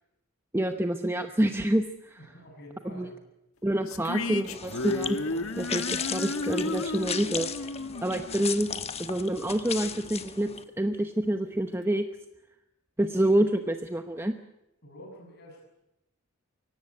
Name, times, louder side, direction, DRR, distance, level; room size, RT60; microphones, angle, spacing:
voice 1, 0.5-2.3 2.8-3.1 3.6-5.2 5.6-7.5 8.0-8.7 9.0-10.5 10.8-12.0 13.0-14.3, right 1 dB, 10° right, 7 dB, 0.9 m, -27 dB
voice 2, 2.2-3.1 3.7-4.1 14.8-15.6, equal, 50° left, 0 dB, 7.0 m, -48 dB
sound 1, 3.9-9.2, left 2 dB, 70° left, 1.5 m, -33 dB
sound 2, 4.4-10.6, left 7 dB, 30° left, 1.2 m, -36 dB
24.0 x 17.5 x 9.7 m, 0.88 s
head